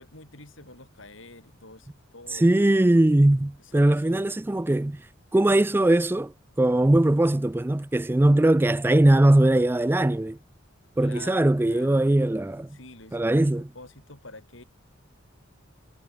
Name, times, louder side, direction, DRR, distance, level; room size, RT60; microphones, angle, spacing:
voice 1, 0.0-2.7 3.6-4.3 11.0-12.1 12.7-14.6, left 2 dB, 65° left, 7.4 m, -47 dB
voice 2, 2.3-5.1 5.3-10.4 11.0-12.7 13.1-13.7, right 1 dB, 10° right, 0.3 m, -20 dB
head